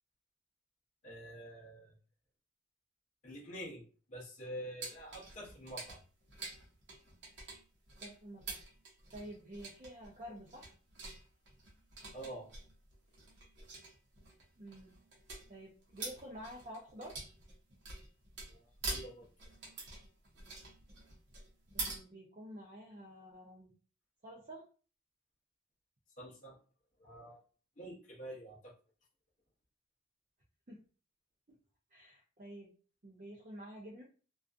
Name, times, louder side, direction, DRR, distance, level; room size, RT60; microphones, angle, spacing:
voice 1, 1.0-1.9 3.2-6.0 12.1-12.5 18.5-19.2 26.2-26.6 27.0-27.4 27.8-28.7, equal, 40° left, -5 dB, 0.7 m, -47 dB
sound 1, 4.8-22.0, right 3 dB, 65° right, 0.8 m, -46 dB
voice 2, 8.0-8.6 9.1-10.7 14.6-14.9 15.5-17.2 21.7-23.7 24.2-24.7 30.7-30.8 31.9-32.7 33.0-34.0, equal, 40° right, -3 dB, 0.5 m, -49 dB
2.5 x 2.3 x 2.4 m, 0.38 s
head